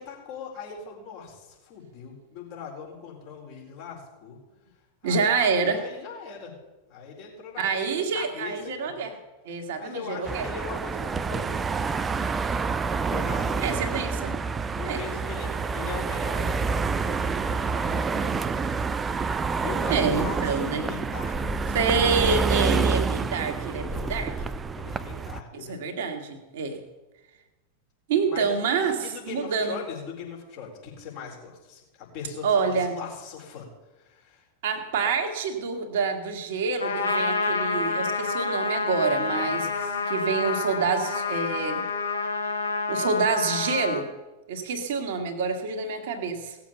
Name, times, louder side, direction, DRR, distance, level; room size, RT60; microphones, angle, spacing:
voice 1, 0.0-4.4 5.0-6.5 6.9-9.1 9.6-11.7 13.0-13.8 14.7-18.6 19.6-21.8 23.9-24.2 24.7-25.8 28.2-33.7 34.0-34.4, left 6 dB, 45° left, -2 dB, 4.4 m, -40 dB
voice 2, 5.0-5.8 7.6-9.1 9.4-10.5 13.6-14.3 14.8-15.0 19.9-20.8 21.7-24.3 25.5-26.8 28.1-29.8 32.4-32.9 34.6-41.8 42.9-44.1 44.5-46.6, right 5 dB, 55° right, 4 dB, 1.7 m, -27 dB
sound 1, 10.2-25.4, right 4 dB, 15° right, 0.5 m, -28 dB
Trumpet, 36.8-44.0, left 4 dB, 75° left, 1.8 m, -28 dB
17.5 x 7.2 x 6.9 m, 1.1 s
figure-of-eight pair, 90°, 0 cm